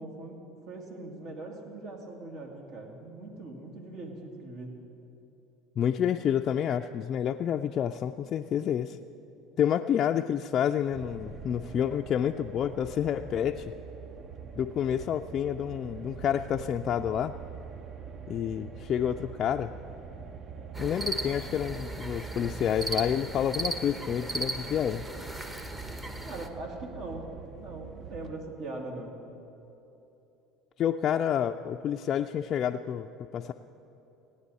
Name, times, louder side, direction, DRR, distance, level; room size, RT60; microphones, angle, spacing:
voice 1, 0.0-4.8 26.2-27.3 27.5-29.1, right 2 dB, 60° right, 1 dB, 2.1 m, -41 dB
voice 2, 5.8-9.0 9.6-13.7 14.6-17.3 18.3-19.7 20.8-25.0 30.8-33.5, left 9 dB, 45° left, 4 dB, 0.3 m, -29 dB
sound 1, 10.9-28.4, right 6 dB, 45° right, 0.7 m, -45 dB
sound 2, 20.7-26.5, right 2 dB, 20° right, 1.0 m, -36 dB
17.0 x 9.5 x 4.1 m, 3.0 s
supercardioid pair, 90°, 0 cm